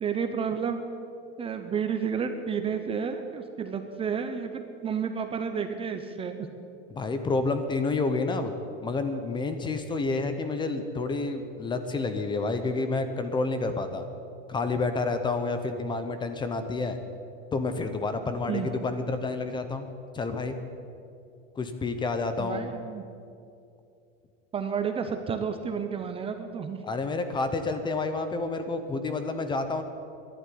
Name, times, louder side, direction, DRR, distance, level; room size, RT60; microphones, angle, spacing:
voice 1, 0.0-0.8 1.4-6.5 18.5-18.7 22.4-23.0 24.5-26.8, right 6 dB, 20° right, 7 dB, 0.7 m, -31 dB
voice 2, 6.9-8.5 8.8-14.1 14.5-17.0 17.5-19.9 20.1-20.6 21.6-22.7 26.8-29.8, left 3 dB, 15° left, 8 dB, 0.8 m, -29 dB
11.5 x 11.5 x 9.9 m, 2.5 s
supercardioid pair, 160°, 31 cm